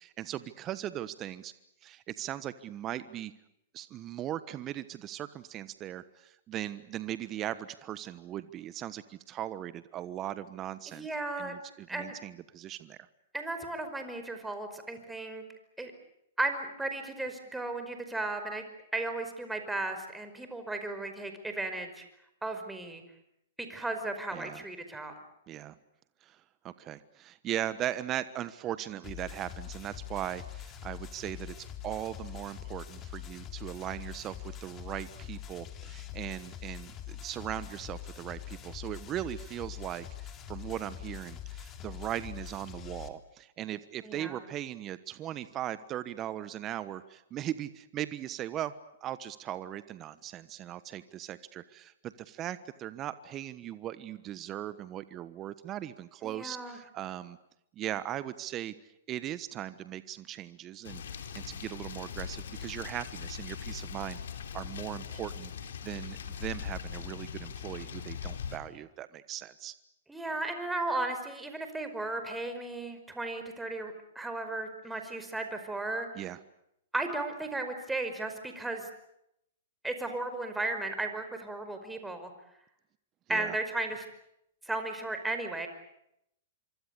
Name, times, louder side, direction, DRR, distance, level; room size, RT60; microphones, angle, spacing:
voice 1, 0.0-1.5 1.8-3.3 3.7-11.1 11.4-13.0 24.3-24.6 25.5-25.8 26.2-48.7 49.0-57.4 57.8-58.7 59.1-64.2 64.5-65.5 65.8-69.7 76.1-76.4 83.3-83.5, right 12 dB, 30° right, 14 dB, 1.2 m, -39 dB
voice 2, 10.9-11.6 11.9-12.2 13.3-15.4 15.8-15.9 16.4-18.7 18.9-22.0 22.4-23.0 23.6-25.1 44.0-44.5 56.2-56.8 70.1-76.1 76.9-78.9 79.8-82.3 83.3-84.0 84.7-85.7, right 2 dB, 5° right, 7 dB, 5.2 m, -35 dB
sound 1, 29.0-43.1, left 10 dB, 30° left, 3.1 m, -44 dB
sound 2, 60.8-68.6, left 7 dB, 70° left, 3.4 m, -40 dB
26.0 x 25.0 x 8.4 m, 0.79 s
hypercardioid pair, 120°, 0 cm